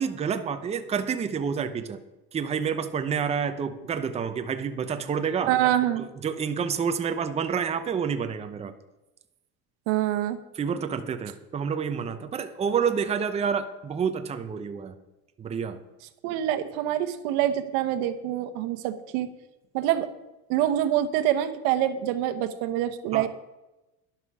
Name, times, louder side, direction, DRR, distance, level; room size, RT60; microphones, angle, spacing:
voice 1, 0.0-2.0 2.3-5.5 5.9-8.7 10.5-14.9 15.4-15.8 23.1-23.3, right 6 dB, 20° right, 8 dB, 0.7 m, -28 dB
voice 2, 5.5-6.1 9.9-10.4 16.2-19.3 19.7-20.1 20.5-23.3, right 12 dB, 80° right, 9 dB, 1.2 m, -25 dB
11.5 x 11.5 x 4.9 m, 0.98 s
cardioid pair, 145°, 33 cm